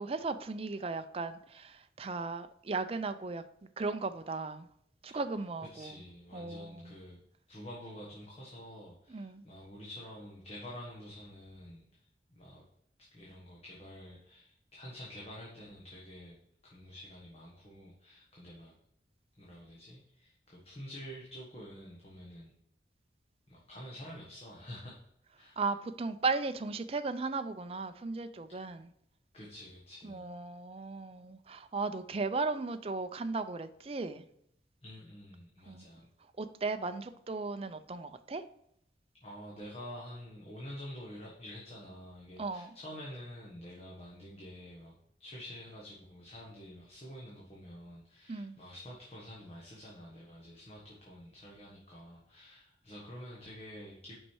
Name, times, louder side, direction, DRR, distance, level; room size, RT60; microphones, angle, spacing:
voice 1, 0.0-3.4 3.8-4.7 5.0-5.9 6.3-6.9 9.1-9.4 25.6-28.9 30.0-34.2 35.7-35.8 36.4-38.4 42.4-42.7 48.3-48.5, right 3 dB, 35° right, 10 dB, 0.4 m, -36 dB
voice 2, 5.7-7.2 7.5-11.9 12.3-12.6 13.0-16.4 16.6-18.7 19.4-22.5 23.5-25.0 25.3-25.6 29.3-30.3 34.8-36.1 39.2-54.2, equal, 35° left, -4 dB, 1.4 m, -48 dB
5.9 x 5.4 x 4.6 m, 0.73 s
head